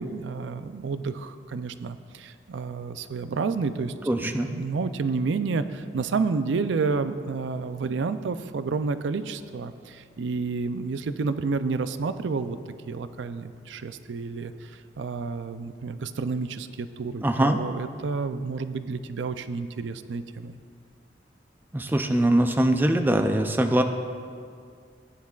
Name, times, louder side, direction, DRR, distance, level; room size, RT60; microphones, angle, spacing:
voice 1, 0.0-3.9 4.2-12.6 12.9-20.5, right 4 dB, 85° right, 11 dB, 0.4 m, -30 dB
voice 2, 4.1-4.5 17.2-17.6 21.7-23.8, right 1 dB, 10° right, 5 dB, 0.4 m, -22 dB
16.5 x 9.5 x 2.4 m, 2.2 s
head